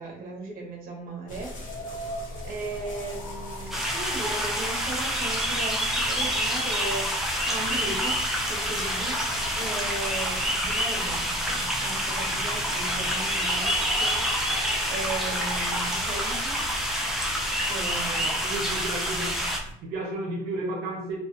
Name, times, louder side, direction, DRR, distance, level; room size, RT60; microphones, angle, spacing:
voice 1, 0.0-1.8 2.4-8.2 8.4-9.2 9.6-16.6 17.7-18.7, right 2 dB, 60° right, 0 dB, 0.8 m, -37 dB
sound 1, 1.3-19.7, equal, 50° left, 1.0 m, -39 dB
sound 2, 3.7-19.6, equal, ahead, 0.4 m, -27 dB
voice 2, 18.1-19.5 19.8-21.2, right 2 dB, 90° right, -1 dB, 0.5 m, -33 dB
2.4 x 2.1 x 2.4 m, 0.70 s
cardioid pair, 110°, 17 cm